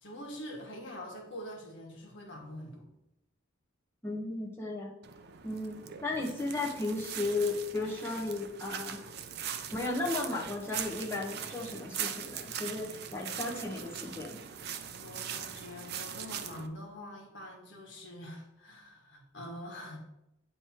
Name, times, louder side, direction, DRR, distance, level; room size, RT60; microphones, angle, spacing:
voice 1, 0.0-2.9 5.9-6.2 15.0-20.0, equal, 60° left, 0 dB, 1.6 m, -45 dB
voice 2, 4.0-4.9 5.4-9.1 9.7-14.4, left 2 dB, 10° left, -4 dB, 1.1 m, -35 dB
sound 1, 5.0-16.7, right 8 dB, 50° right, 0.5 m, -41 dB
8.7 x 3.3 x 4.5 m, 0.87 s
head